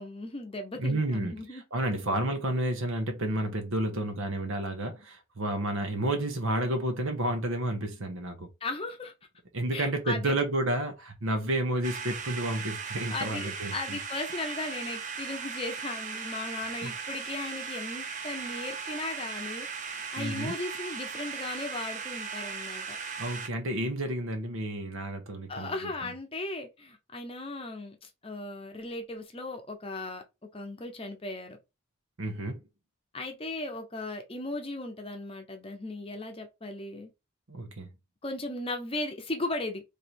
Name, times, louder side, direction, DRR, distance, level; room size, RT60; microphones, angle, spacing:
voice 1, 0.0-1.6 8.6-9.1 9.7-10.4 13.1-19.7 20.1-23.0 25.5-30.2 30.5-31.6 33.1-37.1 38.2-39.8, left 2 dB, 25° left, 0.7 m, -37 dB
voice 2, 0.8-8.5 9.5-14.0 16.8-16.9 20.2-20.5 23.2-26.1 32.2-32.6 37.5-37.9, right 1 dB, 75° right, 0.9 m, -31 dB
sound 1, 11.8-23.5, right 5 dB, 35° right, 0.5 m, -38 dB
3.2 x 2.7 x 4.3 m
head